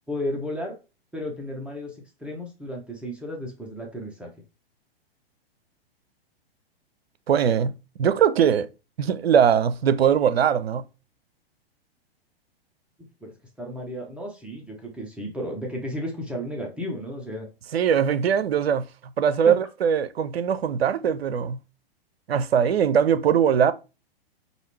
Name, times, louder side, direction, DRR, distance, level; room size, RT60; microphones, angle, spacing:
voice 1, 0.1-0.8 1.1-4.3 13.2-13.3 13.6-17.5 19.5-19.6, equal, 5° right, 0.7 m, -33 dB
voice 2, 7.3-7.7 8.0-8.7 9.0-10.8 17.7-18.8 19.2-21.6 22.3-23.7, right 8 dB, 80° right, 0.5 m, -21 dB
4.8 x 2.5 x 3.2 m
hypercardioid pair, 115°, 31 cm